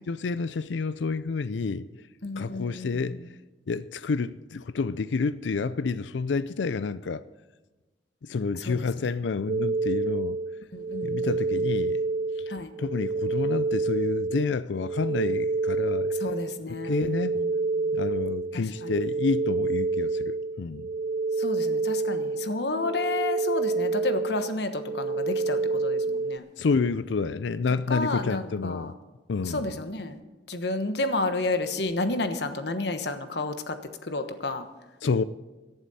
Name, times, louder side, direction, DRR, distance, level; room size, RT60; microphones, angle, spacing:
voice 1, 0.0-2.1 2.4-3.4 3.7-7.2 8.2-10.4 11.0-12.0 12.4-12.5 12.8-16.1 16.8-17.4 17.9-20.9 26.6-28.9 29.3-29.8 35.0-35.2, left 4 dB, 90° left, 0.5 m, -29 dB
voice 2, 2.2-3.2 8.5-8.8 10.7-11.3 12.5-12.7 16.1-17.5 17.8-18.0 18.8-19.0 21.4-26.4 27.9-28.9 29.4-30.2 30.5-33.8 34.0-34.7, left 2 dB, 65° left, 1.2 m, -31 dB
sound 1, 9.5-26.4, right 3 dB, 45° right, 0.3 m, -28 dB
17.5 x 11.5 x 4.2 m
head